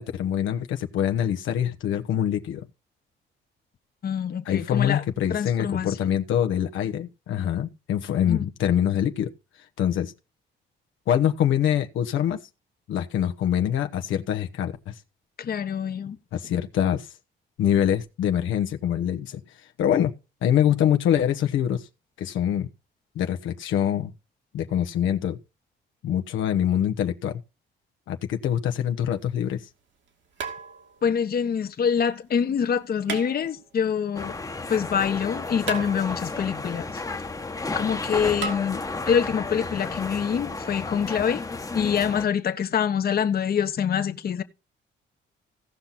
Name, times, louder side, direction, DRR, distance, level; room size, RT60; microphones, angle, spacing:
voice 1, 0.0-2.7 4.4-9.3 9.8-10.1 11.1-12.4 12.9-15.0 16.3-17.1 17.6-19.4 19.8-20.1 20.4-21.9 22.2-22.7 23.1-24.1 24.5-25.4 26.0-27.4 28.1-29.7, left 10 dB, 80° left, 1.1 m, -24 dB
voice 2, 4.0-5.0 5.3-6.1 8.3-8.4 15.4-16.2 31.0-34.3 34.7-37.0 37.7-41.4 41.7-44.4, left 7 dB, 50° left, 1.2 m, -25 dB
sound 1, 29.0-29.1 30.4-31.1 33.0-33.8 35.7-36.4 38.4-38.6, right 6 dB, 70° right, 2.7 m, -34 dB
sound 2, 34.1-42.3, left 3 dB, 15° left, 1.1 m, -33 dB
17.0 x 5.9 x 4.1 m
cardioid pair, 90°, 20 cm